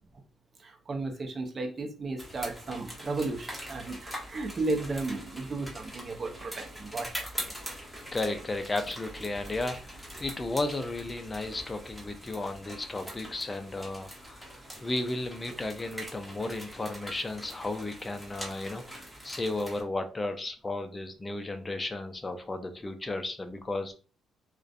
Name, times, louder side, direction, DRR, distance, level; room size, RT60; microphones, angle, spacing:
voice 1, 0.6-7.6, right 3 dB, 40° right, 3 dB, 0.6 m, -34 dB
sound 1, 2.2-19.8, equal, ahead, 1.0 m, -43 dB
voice 2, 8.1-14.5 14.8-23.9, left 2 dB, 20° left, 7 dB, 0.4 m, -34 dB
2.5 x 2.1 x 2.4 m, 0.37 s
cardioid pair, 90°, 0 cm